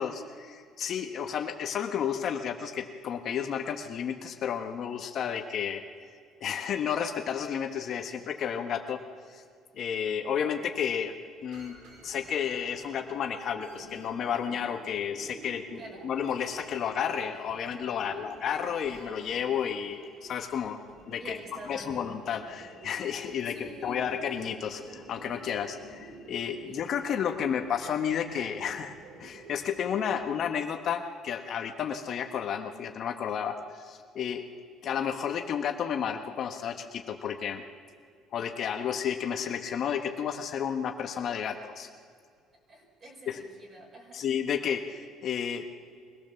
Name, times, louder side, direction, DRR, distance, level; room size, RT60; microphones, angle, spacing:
voice 1, 0.0-5.8 6.4-9.0 9.3-9.4 9.7-11.1 11.4-11.8 12.0-20.8 21.1-21.4 21.6-28.9 29.2-34.4 34.8-37.6 38.3-41.9 43.3-43.4 44.1-45.7, left 8 dB, 50° left, 5 dB, 1.4 m, -32 dB
sound 1, 11.5-30.3, right 2 dB, 70° right, 4.9 m, -50 dB
voice 2, 21.2-22.0 23.5-24.1 42.7-44.3, right 1 dB, 35° right, 0 dB, 5.5 m, -47 dB
23.5 x 17.5 x 7.1 m, 2.2 s
cardioid pair, 135°, 0 cm